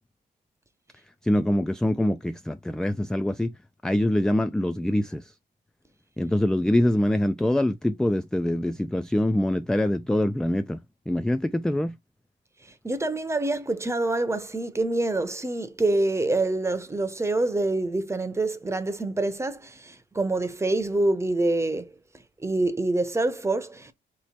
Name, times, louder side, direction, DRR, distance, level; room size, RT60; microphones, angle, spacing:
voice 1, 1.2-3.5 3.8-5.2 6.2-10.8 11.1-11.9, left 1 dB, 5° left, 0.3 m, -24 dB
voice 2, 12.8-21.9 22.4-23.9, right 2 dB, 15° right, 0.7 m, -26 dB
3.2 x 3.0 x 4.2 m
cardioid pair, 90°, 20 cm